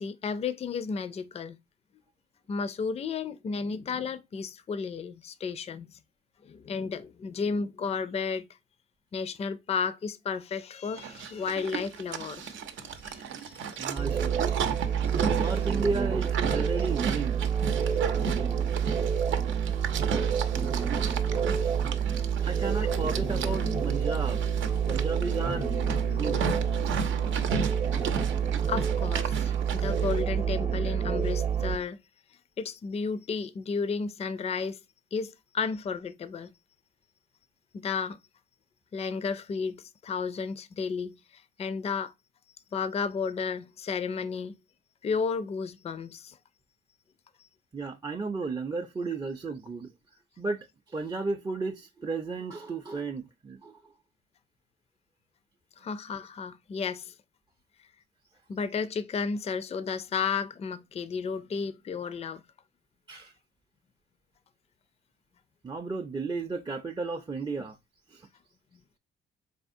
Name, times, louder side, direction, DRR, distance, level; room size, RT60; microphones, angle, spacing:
voice 1, 0.0-1.6 2.5-6.0 6.4-8.5 9.1-13.6 13.9-14.0 15.2-15.3 28.7-32.0 32.6-34.8 35.1-36.5 37.7-38.2 38.9-42.1 42.7-44.6 45.0-46.4 55.8-57.1 58.5-62.4, left 5 dB, 30° left, 0.4 m, -33 dB
Livestock farm animals working animals, 11.0-30.2, right 6 dB, 75° right, 0.7 m, -35 dB
voice 2, 13.8-14.6 15.3-17.4 21.4-21.5 22.4-24.4 24.9-25.7 26.1-26.4 26.8-26.9 47.7-49.9 50.4-53.7 63.1-63.3 65.6-67.8 68.1-68.2, right 3 dB, 20° right, 0.5 m, -34 dB
sound 1, 14.0-31.8, right 7 dB, 35° right, 0.8 m, -28 dB
sound 2, 22.8-28.9, left 15 dB, 75° left, 0.6 m, -44 dB
4.2 x 3.4 x 2.6 m
cardioid pair, 90°, 20 cm